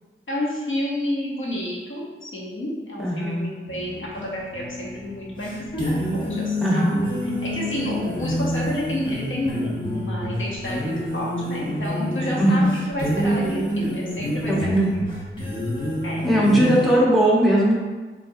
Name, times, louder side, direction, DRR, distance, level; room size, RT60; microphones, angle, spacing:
voice 1, 0.3-15.2 16.0-16.2, left 1 dB, 65° left, -4 dB, 1.0 m, -30 dB
voice 2, 3.0-3.5 6.6-7.0 12.4-12.7 14.5-14.9 16.2-17.7, right 1 dB, ahead, -6 dB, 1.1 m, -19 dB
sound 1, 3.7-16.9, equal, 20° left, 1.1 m, -28 dB
4.2 x 3.5 x 2.7 m, 1.3 s
wide cardioid pair, 75°, 21 cm